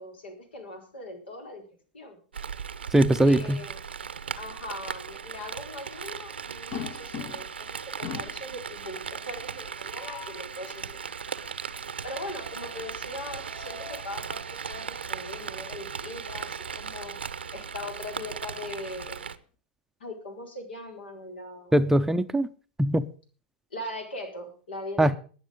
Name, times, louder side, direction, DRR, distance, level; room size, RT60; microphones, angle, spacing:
voice 1, 0.0-1.6 1.9-2.2 3.3-3.8 4.4-11.0 11.7-17.2 17.5-19.3 20.0-21.7 23.7-25.2, left 1 dB, 75° left, 4.4 m, -40 dB
Rain, 2.3-19.4, right 6 dB, 85° right, 0.8 m, -37 dB
voice 2, 2.9-3.6 21.7-22.5 22.8-23.1 25.0-25.2, right 1 dB, 5° right, 0.6 m, -21 dB
sound 1, 6.7-7.6 8.0-8.5 9.7-10.5 13.1-14.2 15.6-15.8 16.1-16.2 17.8-19.0, left 8 dB, 50° left, 1.5 m, -42 dB
20.5 x 7.2 x 5.2 m
hypercardioid pair, 100°, 6 cm